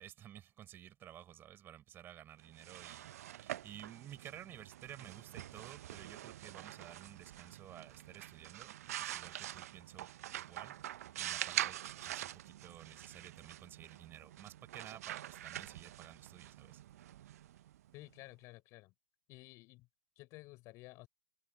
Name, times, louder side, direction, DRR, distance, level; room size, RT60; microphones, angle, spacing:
voice 1, 0.0-16.8, right 11 dB, 20° right, 6.7 m, -54 dB
sound 1, 2.4-18.1, right 13 dB, 45° right, 0.9 m, -45 dB
voice 2, 17.9-18.9 19.3-19.9 20.2-21.1, left 21 dB, 30° left, 6.9 m, -53 dB
figure-of-eight pair, 120°, 11 cm